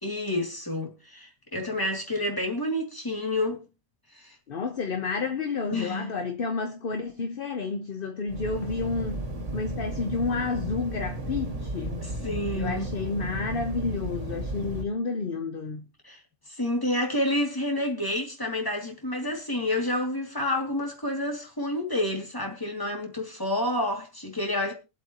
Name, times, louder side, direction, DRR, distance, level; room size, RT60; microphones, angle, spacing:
voice 1, 0.0-3.7 4.1-4.4 5.7-6.1 12.0-12.9 16.0-16.2 16.5-24.7, left 1 dB, 15° left, 2.7 m, -29 dB
voice 2, 4.5-9.3 9.5-12.1 12.5-15.9, left 4 dB, 50° left, 1.0 m, -30 dB
sound 1, 8.3-14.8, right 1 dB, 70° right, 2.1 m, -34 dB
23.5 x 7.8 x 3.0 m
omnidirectional pair, 1.3 m